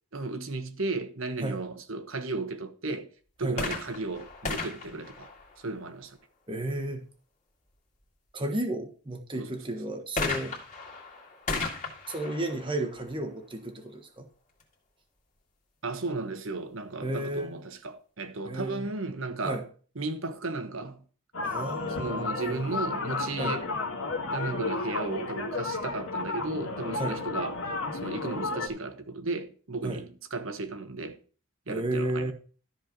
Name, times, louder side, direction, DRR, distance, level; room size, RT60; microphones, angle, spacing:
voice 1, 0.1-3.1 3.4-5.3 5.6-6.2 9.3-10.0 15.8-19.6 19.9-21.0 22.0-23.6 24.3-27.6 28.0-31.2 31.7-32.3, right 3 dB, 65° right, 1.3 m, -35 dB
sound 1, 3.5-6.1 10.2-13.8 14.6-14.7, left 3 dB, 35° left, 2.2 m, -36 dB
voice 2, 6.5-7.0 8.3-10.6 12.1-14.2 17.0-17.6 18.4-18.9 19.4-19.6 21.4-22.6 23.4-23.6 27.0-27.2 29.8-30.0 31.7-32.3, right 1 dB, 20° right, 1.3 m, -33 dB
sound 2, 21.3-28.7, left 3 dB, 80° left, 2.1 m, -32 dB
13.5 x 4.5 x 6.1 m
head